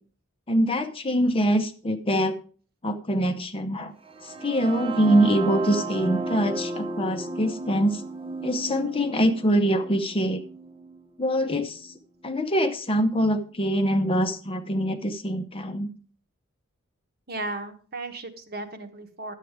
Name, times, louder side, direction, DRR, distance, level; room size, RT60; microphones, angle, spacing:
voice 1, 0.5-2.4 2.8-3.9 4.4-8.0 8.4-10.4 11.2-11.8 12.2-15.9, equal, 25° left, 7 dB, 0.8 m, -24 dB
sound 1, 4.0-11.9, right 3 dB, 25° right, 0.9 m, -34 dB
voice 2, 17.3-19.4, right 2 dB, 45° right, 6 dB, 1.2 m, -35 dB
10.5 x 8.2 x 4.8 m, 0.40 s
head